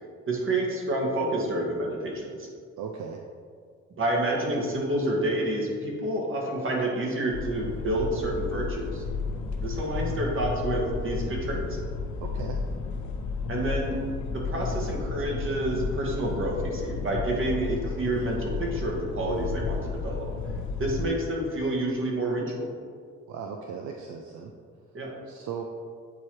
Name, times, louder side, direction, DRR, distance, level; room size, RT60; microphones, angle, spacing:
voice 1, 0.3-2.5 4.0-9.0 9.6-11.8 13.5-14.0 14.3-20.3 20.8-22.7 24.9-25.1, right 1 dB, 45° right, -2 dB, 1.6 m, -29 dB
voice 2, 2.8-3.2 12.2-12.6 23.3-24.5 25.3-25.7, right 6 dB, 70° right, 2 dB, 0.5 m, -37 dB
sound 1, 7.3-21.1, left 4 dB, 70° left, 0.7 m, -32 dB
8.3 x 2.9 x 4.6 m, 2.1 s
cardioid pair, 90°, 30 cm